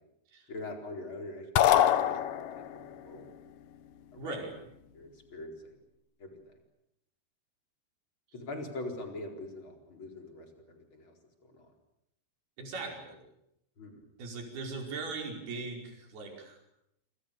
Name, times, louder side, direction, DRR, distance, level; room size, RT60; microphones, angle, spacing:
voice 1, 0.5-3.3 4.1-4.5 4.9-5.7 6.2-6.3 8.3-11.1 11.5-11.7 12.9-13.0 13.8-14.0, left 2 dB, 30° left, 3 dB, 4.9 m, -43 dB
sound 1, 1.6-2.9, left 11 dB, 65° left, 2.4 m, -24 dB
voice 2, 4.2-4.5 12.6-13.2 14.2-16.6, right 3 dB, 65° right, 2 dB, 7.1 m, -39 dB
28.0 x 26.0 x 6.9 m, 0.81 s
omnidirectional pair, 4.7 m